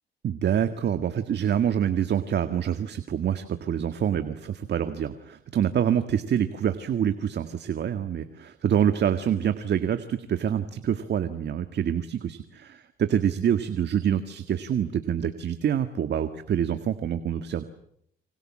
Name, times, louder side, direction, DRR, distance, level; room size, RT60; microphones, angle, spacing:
voice 1, 0.2-17.6, right 9 dB, 60° right, 9 dB, 1.8 m, -26 dB
29.5 x 26.0 x 7.6 m, 0.71 s
cardioid pair, 90°, 20 cm